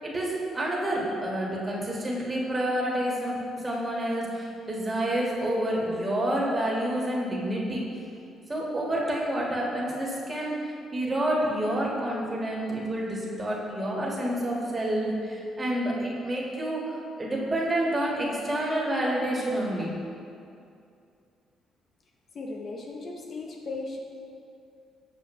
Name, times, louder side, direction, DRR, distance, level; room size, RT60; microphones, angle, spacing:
voice 1, 0.0-3.4 3.6-7.9 8.5-20.0, right 1 dB, 20° right, -4 dB, 1.6 m, -28 dB
voice 2, 22.3-24.0, left 3 dB, 50° left, 0 dB, 0.8 m, -36 dB
7.2 x 6.5 x 3.1 m, 2.6 s
cardioid pair, 85°, 0 cm